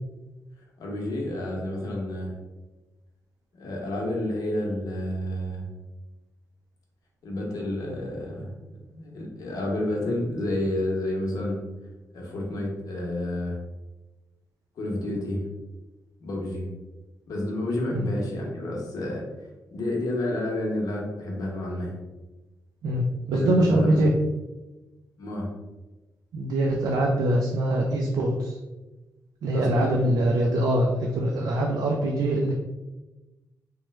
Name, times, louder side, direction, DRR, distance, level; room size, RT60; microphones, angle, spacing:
voice 1, 0.8-2.3 3.6-5.7 7.2-8.5 8.9-11.6 12.1-13.6 14.8-15.4 16.2-16.7 17.3-19.2 19.7-21.9 23.3-24.1 25.2-25.5 29.5-30.0, left 1 dB, 65° left, -2 dB, 0.8 m, -30 dB
voice 2, 22.8-24.1 26.3-28.6 29.4-32.5, right 1 dB, 90° right, 0 dB, 0.4 m, -23 dB
3.0 x 2.1 x 3.1 m, 1.1 s
wide cardioid pair, 130°, 7 cm